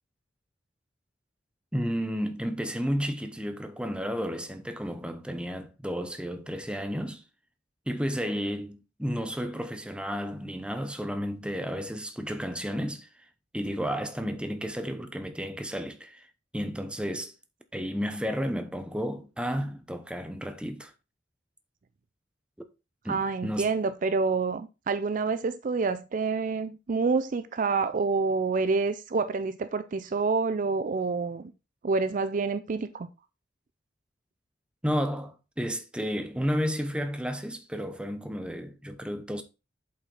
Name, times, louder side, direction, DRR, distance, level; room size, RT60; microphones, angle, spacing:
voice 1, 1.7-7.2 7.9-13.1 13.5-16.3 16.5-17.3 17.7-20.9 23.0-23.7 34.8-39.4, equal, 5° right, 0.8 m, -32 dB
voice 2, 23.1-31.5 31.8-33.1, right 4 dB, 45° right, 0.4 m, -27 dB
7.6 x 5.5 x 3.9 m
head